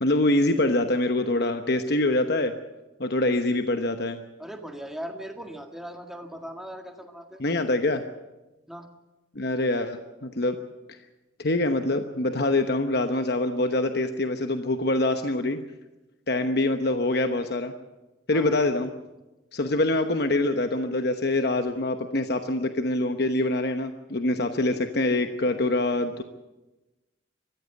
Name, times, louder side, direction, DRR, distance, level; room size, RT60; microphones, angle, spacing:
voice 1, 0.0-2.5 3.0-4.2 7.4-8.0 9.3-10.6 10.9-11.0 11.4-15.6 16.3-17.7 18.3-18.9 19.5-26.2, left 2 dB, 55° left, 7 dB, 1.0 m, -25 dB
voice 2, 4.4-7.4 8.7-8.9 18.3-18.6, equal, ahead, 3 dB, 1.8 m, -39 dB
22.5 x 15.0 x 8.1 m, 1.1 s
head